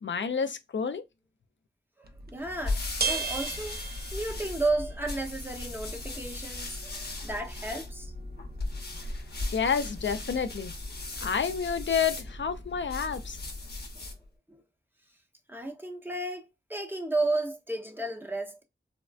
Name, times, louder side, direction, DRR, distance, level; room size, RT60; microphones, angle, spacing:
voice 1, 0.0-1.0 9.5-10.7 11.2-13.4, left 6 dB, 75° left, 0.4 m, -29 dB
voice 2, 2.0-3.8 4.1-8.1 14.0-14.1 14.5-14.6 15.5-18.6, right 2 dB, 10° right, 0.7 m, -33 dB
sound 1, 2.0-13.5, right 5 dB, 55° right, 0.6 m, -41 dB
sound 2, 2.3-14.2, left 2 dB, 55° left, 0.8 m, -37 dB
3.4 x 2.1 x 2.3 m
wide cardioid pair, 65°, 19 cm